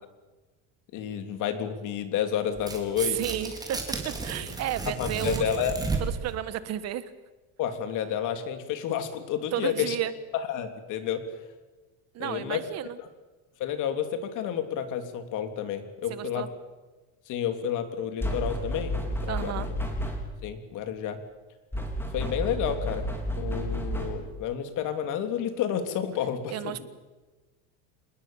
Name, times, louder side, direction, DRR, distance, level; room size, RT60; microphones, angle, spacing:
voice 1, 0.9-3.2 4.8-5.8 7.6-10.0 10.3-11.2 12.2-12.6 13.0-13.1 13.6-16.5 17.3-18.9 19.2-19.7 20.4-21.2 22.1-23.1 23.4-26.9, left 9 dB, 55° left, 8 dB, 3.4 m, -30 dB
Tearing, 2.6-6.3, right 3 dB, 10° right, 4.2 m, -33 dB
voice 2, 3.1-5.5 6.0-7.1 9.5-10.1 12.1-13.0 16.1-16.5 19.3-19.7 26.5-26.9, right 12 dB, 45° right, 14 dB, 1.4 m, -33 dB
sound 1, 18.2-20.4 21.7-24.4, equal, 5° left, 4.1 m, -31 dB
26.5 x 20.5 x 7.3 m, 1.2 s
cardioid pair, 160°, 37 cm